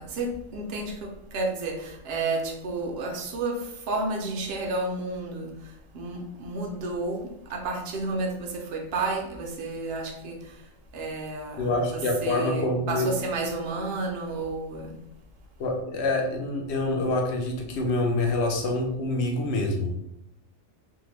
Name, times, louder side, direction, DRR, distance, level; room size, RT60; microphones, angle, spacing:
voice 1, 0.0-5.5 5.9-10.4 10.9-14.9, right 2 dB, 60° right, 1 dB, 0.7 m, -31 dB
voice 2, 11.6-13.1 15.6-19.9, left 2 dB, 65° left, 2 dB, 0.7 m, -26 dB
2.7 x 2.1 x 3.1 m, 0.77 s
omnidirectional pair, 1.4 m